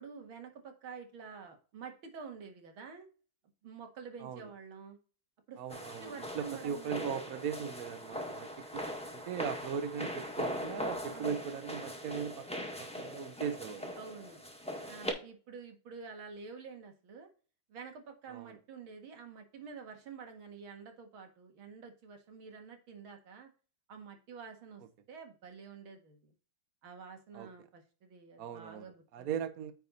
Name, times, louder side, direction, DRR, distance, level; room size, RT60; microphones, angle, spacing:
voice 1, 0.0-3.1 3.6-5.0 5.5-7.1 11.0-11.4 14.0-14.4 14.8-17.3 17.7-23.5 23.9-24.8 25.1-26.3 26.8-29.3, right 5 dB, 80° right, 2.6 m, -49 dB
voice 2, 4.2-4.5 5.6-8.8 9.1-14.0 18.3-18.6 27.3-27.5 28.4-29.7, right 7 dB, 55° right, 1.1 m, -39 dB
sound 1, 5.7-15.1, equal, 5° left, 1.3 m, -40 dB
9.5 x 4.6 x 4.0 m
omnidirectional pair, 2.2 m